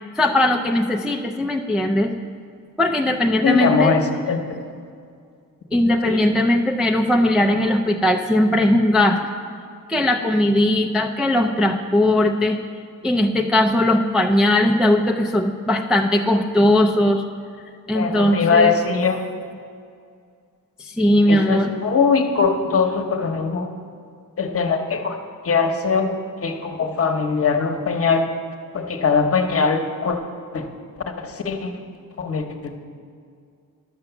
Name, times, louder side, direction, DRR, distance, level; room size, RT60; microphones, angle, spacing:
voice 1, 0.2-2.1 2.8-4.0 5.7-9.2 9.9-12.6 13.0-17.2 17.9-18.7 20.8-21.7, left 1 dB, ahead, 2 dB, 0.3 m, -19 dB
voice 2, 3.4-4.6 6.1-6.2 17.9-19.2 21.3-23.7 24.4-25.2 25.4-26.1 26.4-28.2 28.7-30.2 30.5-30.7 31.2-31.7 32.2-32.7, left 5 dB, 45° left, 5 dB, 0.9 m, -21 dB
11.5 x 6.9 x 6.8 m, 2.3 s
wide cardioid pair, 160°, 34 cm